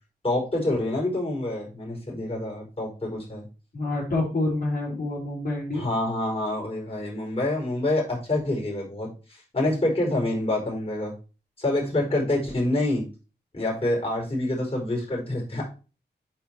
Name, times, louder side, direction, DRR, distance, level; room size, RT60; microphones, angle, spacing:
voice 1, 0.2-3.4 5.7-11.1 11.6-13.1 13.5-15.7, left 1 dB, 30° left, -2 dB, 4.9 m, -27 dB
voice 2, 3.7-5.9 11.9-12.3, left 2 dB, 55° left, -6 dB, 4.2 m, -28 dB
9.6 x 4.8 x 4.5 m, 0.33 s
wide cardioid pair, 100°, 18 cm